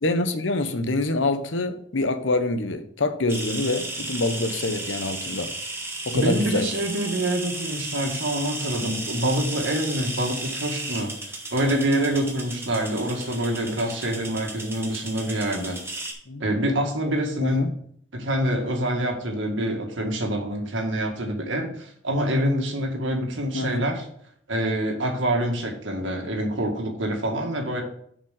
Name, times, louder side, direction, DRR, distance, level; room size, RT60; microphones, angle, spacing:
voice 1, 0.0-5.5 6.1-6.7 16.3-16.5 17.4-17.7 23.5-23.8, left 2 dB, 75° left, 10 dB, 0.9 m, -26 dB
sound 1, 3.3-16.1, right 2 dB, 15° right, 1.5 m, -34 dB
voice 2, 6.1-11.1 11.5-15.8 16.4-17.7 18.1-24.1 24.5-27.8, right 1 dB, 75° right, 2 dB, 1.9 m, -26 dB
7.2 x 5.1 x 6.5 m, 0.65 s
head